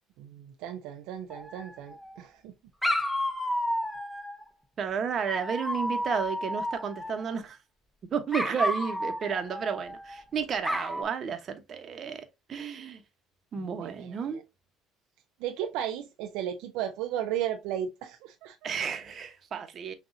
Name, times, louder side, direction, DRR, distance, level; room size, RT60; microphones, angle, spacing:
voice 1, 0.2-2.5 13.6-14.4 15.4-18.7, right 10 dB, 75° right, 0.5 m, -35 dB
Dog, 1.3-2.1 2.8-4.5 5.3-7.4 8.3-10.2 10.6-11.0, left 1 dB, 5° left, 0.9 m, -32 dB
voice 2, 4.8-7.6 8.1-13.0 13.5-14.4 18.6-19.9, right 7 dB, 45° right, 1.0 m, -32 dB
6.2 x 2.6 x 2.6 m
supercardioid pair, 75°, 0 cm